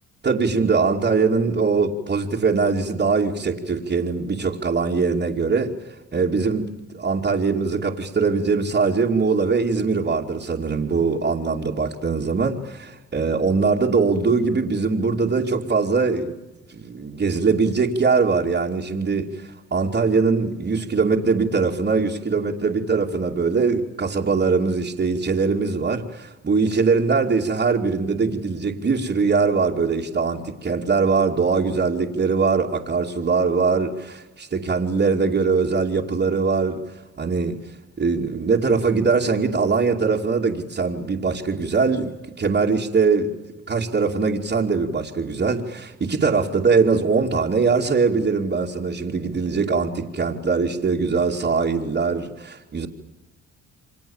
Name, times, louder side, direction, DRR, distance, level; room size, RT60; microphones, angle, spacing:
voice 1, 0.2-5.7 6.1-16.3 16.7-36.8 37.2-37.6 38.0-43.3 43.7-52.9, right 4 dB, 35° right, -4 dB, 2.8 m, -22 dB
30.0 x 25.0 x 7.3 m, 1.0 s
cardioid pair, 90°, 30 cm